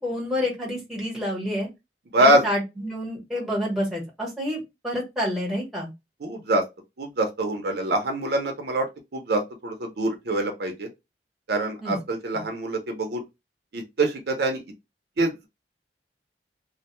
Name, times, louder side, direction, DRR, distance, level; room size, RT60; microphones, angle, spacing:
voice 1, 0.0-1.7 2.2-5.9 11.8-12.0 12.3-12.5, equal, ahead, 1.0 m, -28 dB
voice 2, 2.1-2.5 6.2-6.6 7.0-8.9 9.1-10.9 11.5-13.2 13.7-14.6 15.2-15.5, right 1 dB, 60° right, 0.5 m, -24 dB
2.5 x 2.1 x 2.9 m
head